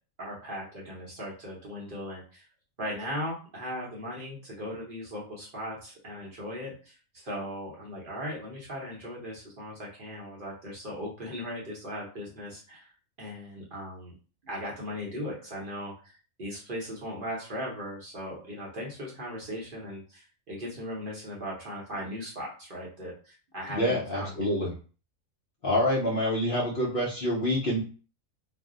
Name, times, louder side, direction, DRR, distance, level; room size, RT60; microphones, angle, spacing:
voice 1, 0.2-2.5 2.8-12.9 13.2-14.1 14.4-24.4, equal, 45° right, -4 dB, 0.8 m, -38 dB
voice 2, 23.7-24.7 25.6-27.8, left 1 dB, 50° left, -5 dB, 0.7 m, -27 dB
2.6 x 2.1 x 3.6 m, 0.38 s
omnidirectional pair, 1.5 m